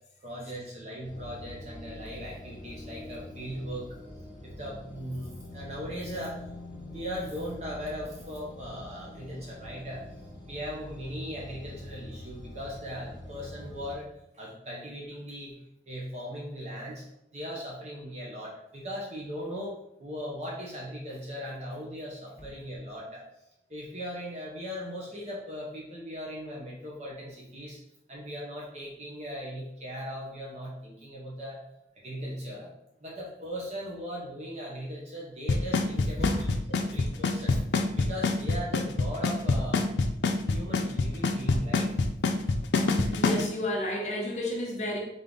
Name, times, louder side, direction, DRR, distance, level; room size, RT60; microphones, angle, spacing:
voice 1, 0.2-4.0 4.4-6.4 6.7-10.0 10.5-14.1 14.3-15.5 15.9-17.0 17.3-23.2 23.7-27.8 28.1-31.6 32.0-32.7 33.0-36.5 36.8-37.6 38.0-39.9 40.4-41.9, equal, 40° right, -4 dB, 0.9 m, -38 dB
sound 1, 1.0-13.9, left 1 dB, 10° right, 1.6 m, -44 dB
Drum kit / Snare drum / Bass drum, 35.5-43.4, left 3 dB, 80° left, 0.5 m, -24 dB
voice 2, 36.2-36.5 43.1-45.0, left 1 dB, 40° left, -2 dB, 0.9 m, -31 dB
3.7 x 3.6 x 3.8 m, 0.81 s
head